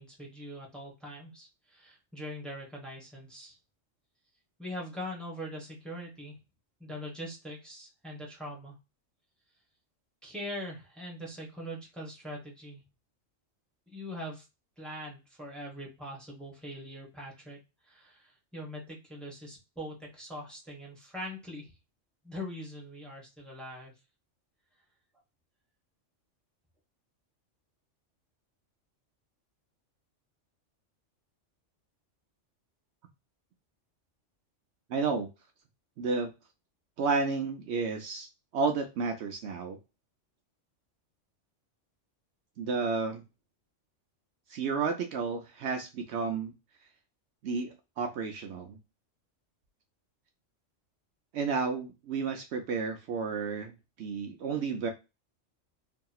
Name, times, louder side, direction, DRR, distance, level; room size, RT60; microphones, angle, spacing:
voice 1, 0.0-3.6 4.6-6.3 6.8-8.7 10.2-12.8 13.9-14.4 14.8-17.6 17.9-21.7 22.2-23.9, equal, ahead, -3 dB, 1.0 m, -42 dB
voice 2, 34.9-35.3 36.0-36.3 37.0-38.3 38.5-39.8 42.6-43.2 44.5-46.5 47.4-48.8 51.3-54.9, right 4 dB, 70° right, 5 dB, 0.8 m, -31 dB
2.8 x 2.7 x 2.2 m, 0.26 s
omnidirectional pair, 1.3 m